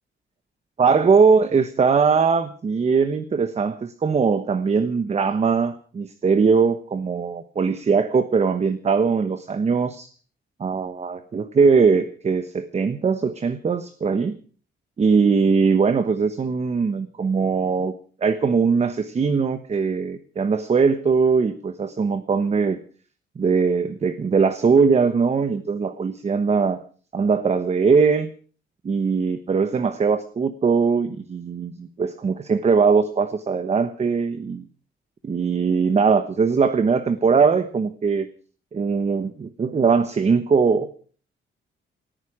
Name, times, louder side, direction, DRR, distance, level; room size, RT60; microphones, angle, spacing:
voice 1, 0.8-10.1 10.6-14.4 15.0-17.9 18.2-22.8 23.4-26.8 27.1-28.3 28.8-34.6 35.2-38.3 38.7-40.9, right 5 dB, 30° right, 11 dB, 1.1 m, -20 dB
19.5 x 14.5 x 4.9 m, 0.42 s
wide cardioid pair, 170°, 20 cm